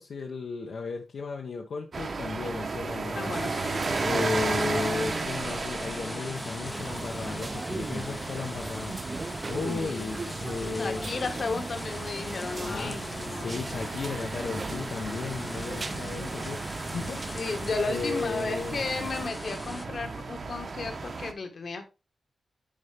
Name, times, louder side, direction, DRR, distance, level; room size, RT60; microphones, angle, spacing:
voice 1, 0.0-3.4 4.0-11.1 12.6-13.0 13.3-17.5 17.8-18.8, left 4 dB, 75° left, 0.9 m, -35 dB
sound 1, 1.9-21.3, right 4 dB, 50° right, 0.9 m, -35 dB
voice 2, 3.1-5.5 9.6-10.2 10.8-13.6 17.3-21.9, left 3 dB, 55° left, 1.5 m, -35 dB
sound 2, 3.3-19.9, left 1 dB, 15° left, 0.5 m, -41 dB
sound 3, 6.6-19.3, right 3 dB, 35° right, 0.5 m, -39 dB
10.5 x 4.4 x 3.4 m
wide cardioid pair, 120°, 0 cm